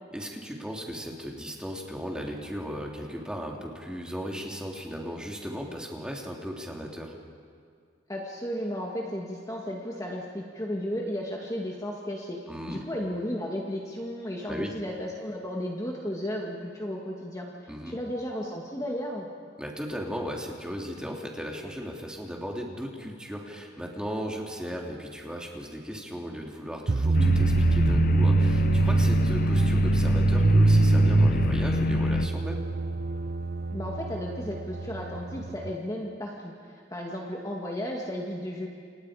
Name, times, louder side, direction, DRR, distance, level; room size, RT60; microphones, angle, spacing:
voice 1, 0.1-7.2 12.5-12.8 14.5-14.7 17.7-18.0 19.6-32.6, equal, 5° right, -1 dB, 3.0 m, -36 dB
voice 2, 8.1-12.4 12.7-17.5 17.9-19.3 33.7-36.5 36.9-38.7, equal, 20° left, -1 dB, 2.1 m, -34 dB
sound 1, 26.9-35.7, right 3 dB, 50° right, 0.7 m, -24 dB
sound 2, 27.1-32.3, left 3 dB, 50° left, 0.5 m, -27 dB
29.0 x 28.5 x 5.1 m, 2.3 s
head